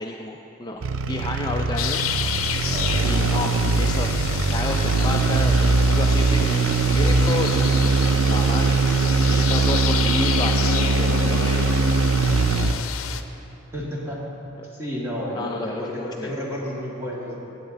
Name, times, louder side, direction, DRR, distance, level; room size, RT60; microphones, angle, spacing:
voice 1, 0.0-2.0 2.3-2.6 3.0-4.1 4.5-11.7 15.3-16.3, left 2 dB, 20° left, 1 dB, 0.4 m, -31 dB
sound 1, 0.8-12.9, right 4 dB, 70° right, 0.5 m, -21 dB
sound 2, 1.8-13.2, left 9 dB, 85° left, 0.6 m, -30 dB
voice 2, 2.6-3.0 13.7-14.2 14.7-17.4, equal, 15° right, -5 dB, 2.0 m, -31 dB
16.5 x 8.7 x 4.0 m, 2.9 s
head